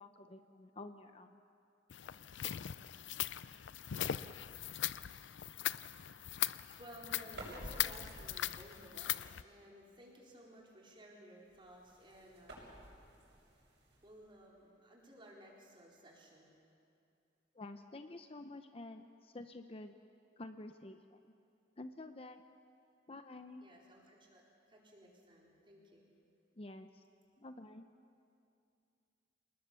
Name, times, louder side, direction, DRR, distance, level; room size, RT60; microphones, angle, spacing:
voice 1, 0.0-1.4 17.5-19.9 20.4-21.3 21.8-22.5 23.1-23.6 26.6-27.0 27.4-27.9, left 2 dB, 30° left, 8 dB, 0.7 m, -50 dB
sound 1, 1.9-9.4, left 11 dB, 80° left, 0.5 m, -40 dB
voice 2, 5.9-16.6 23.6-24.4 24.7-26.1, right 1 dB, 30° right, -3 dB, 4.5 m, -57 dB
sound 2, 7.2-8.8 11.5-14.4, right 1 dB, 70° right, 7.0 m, -52 dB
28.0 x 20.0 x 6.9 m, 2.5 s
head